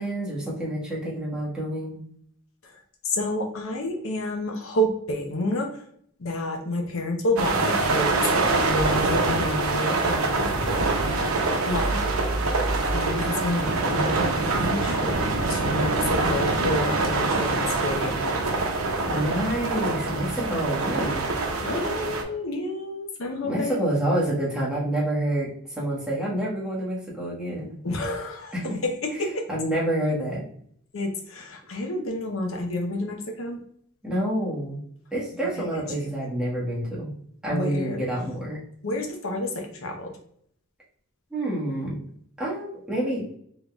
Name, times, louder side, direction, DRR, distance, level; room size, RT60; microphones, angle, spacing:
voice 1, 0.0-2.0 19.1-21.4 23.4-27.8 28.5-28.8 29.5-30.4 34.0-34.8 35.1-37.1 37.4-38.6 41.3-42.0 42.4-43.3, right 1 dB, 5° right, -7 dB, 1.4 m, -28 dB
voice 2, 3.0-5.7 6.2-11.2 11.7-12.0 12.9-15.1 15.5-18.6 21.6-24.0 27.8-29.4 30.9-33.6 35.6-35.7 36.0-36.1 37.5-38.0 38.8-40.2, left 1 dB, 70° left, 3 dB, 0.7 m, -29 dB
sound 1, 7.4-22.2, right 3 dB, 80° right, 0.7 m, -25 dB
3.8 x 3.8 x 2.3 m, 0.66 s
head